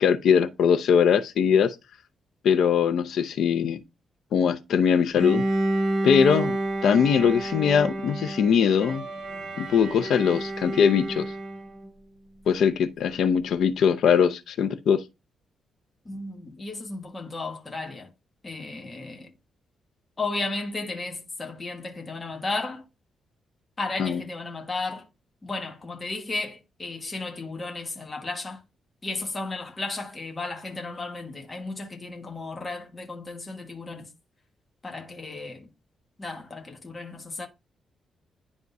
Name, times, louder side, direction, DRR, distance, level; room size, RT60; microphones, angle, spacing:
voice 1, 0.0-1.7 2.4-3.8 4.3-5.4 6.0-6.6 6.8-9.0 9.6-11.3 12.5-15.0 24.0-24.2, left 7 dB, 75° left, 0.7 m, -21 dB
Bowed string instrument, 5.1-11.9, right 1 dB, 55° right, 2.5 m, -29 dB
voice 2, 16.1-18.1 18.4-19.3 20.2-22.8 23.8-25.0 25.4-28.6 29.0-34.1 34.8-35.7 36.2-37.5, left 3 dB, 25° left, 1.4 m, -34 dB
10.5 x 3.6 x 2.7 m
cardioid pair, 135°, 0 cm